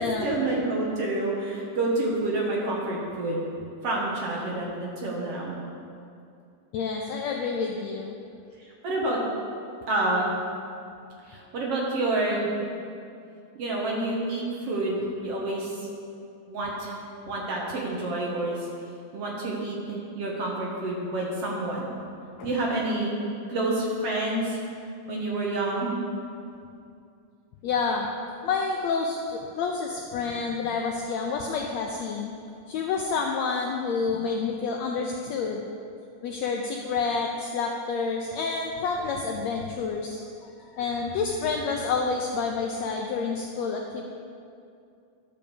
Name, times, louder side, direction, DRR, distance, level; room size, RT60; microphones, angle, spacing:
voice 1, 0.0-3.4 3.8-5.5 8.8-9.2 9.9-10.3 11.3-12.5 13.6-15.9 16.5-16.9 17.3-18.6 19.1-21.9 22.4-23.1 23.5-24.6 25.1-25.9, right 2 dB, 55° right, -3 dB, 2.0 m, -28 dB
voice 2, 6.7-8.1 22.4-22.5 24.2-24.4 27.6-28.1 28.4-32.3 32.7-35.6 36.2-44.0, left 4 dB, 85° left, 1 dB, 1.5 m, -29 dB
11.5 x 5.2 x 6.8 m, 2.5 s
omnidirectional pair, 3.7 m